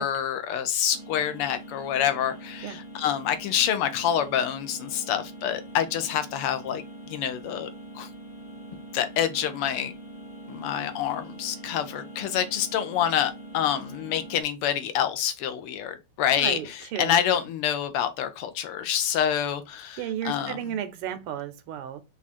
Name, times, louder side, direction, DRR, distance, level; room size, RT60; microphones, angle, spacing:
voice 1, 0.0-6.8 7.1-7.7 7.9-8.1 8.9-10.0 10.5-16.6 17.0-20.0 20.2-20.6, left 10 dB, 90° left, 1.7 m, -27 dB
sound 1, 0.9-14.4, right 1 dB, 45° left, 0.5 m, -43 dB
voice 2, 16.3-17.4 20.0-22.0, right 10 dB, 85° right, 1.6 m, -34 dB
4.8 x 2.4 x 4.1 m
omnidirectional pair, 2.4 m